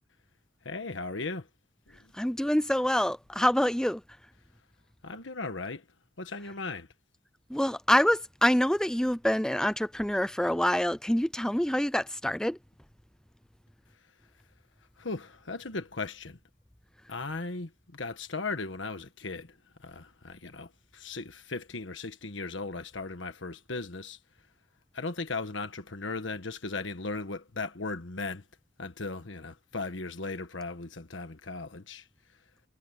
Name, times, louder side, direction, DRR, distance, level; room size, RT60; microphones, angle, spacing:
voice 1, 0.6-1.5 1.9-2.1 5.0-5.8 6.2-6.9 15.0-16.4 17.1-24.2 24.9-28.4 28.8-32.1, left 3 dB, 85° left, 1.4 m, -37 dB
voice 2, 2.1-4.0 7.5-12.6, left 1 dB, 5° left, 0.4 m, -26 dB
head